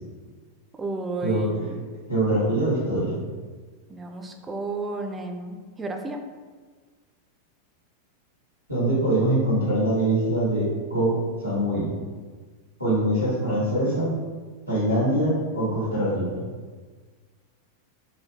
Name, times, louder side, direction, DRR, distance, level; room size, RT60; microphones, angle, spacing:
voice 1, 0.7-1.8 3.9-6.2, right 2 dB, 15° right, 4 dB, 0.3 m, -32 dB
voice 2, 2.1-3.2 8.7-11.9 12.8-14.2 14.7-16.4, right 1 dB, 90° left, -13 dB, 1.4 m, -23 dB
3.5 x 2.2 x 2.7 m, 1.5 s
figure-of-eight pair, 90°, 0 cm